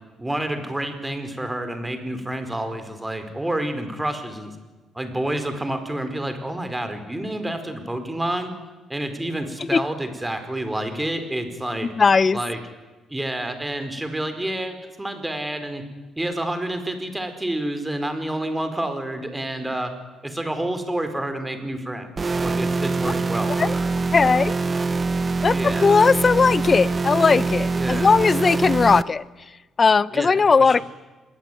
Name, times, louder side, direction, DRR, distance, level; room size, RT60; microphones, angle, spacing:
voice 1, 0.2-4.5 4.9-8.5 8.9-11.9 12.3-12.6 13.1-15.8 16.2-19.9 20.2-23.9 25.5-26.0 27.7-28.1 30.1-30.8, right 1 dB, 10° right, 8 dB, 4.7 m, -29 dB
voice 2, 11.8-12.4 23.6-23.7 24.1-24.6 25.4-29.2 29.8-30.8, left 5 dB, 35° left, 19 dB, 0.8 m, -18 dB
sound 1, 22.2-29.0, right 3 dB, 35° right, 1.0 m, -24 dB
26.5 x 21.5 x 9.4 m, 1.2 s
cardioid pair, 90°, 0 cm